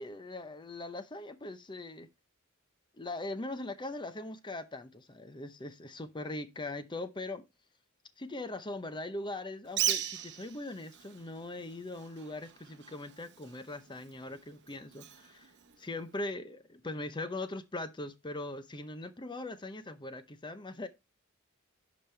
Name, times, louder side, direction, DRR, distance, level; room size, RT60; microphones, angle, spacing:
voice 1, 0.0-2.1 3.0-7.4 8.2-15.5 15.8-20.9, left 2 dB, 20° left, 0.7 m, -40 dB
Bird, 9.6-16.3, right 11 dB, 55° right, 0.9 m, -39 dB
9.9 x 5.3 x 3.3 m
head